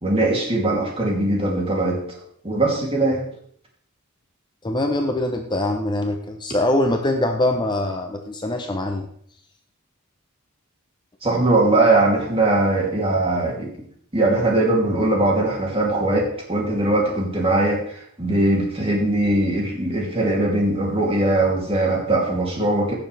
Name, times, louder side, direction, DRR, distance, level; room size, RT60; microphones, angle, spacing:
voice 1, 0.0-2.2 2.4-3.2 11.2-13.7 14.1-22.9, right 2 dB, 25° right, -2 dB, 2.9 m, -20 dB
voice 2, 4.6-9.1, left 1 dB, 20° left, 4 dB, 0.8 m, -23 dB
16.5 x 7.0 x 3.4 m, 0.64 s
head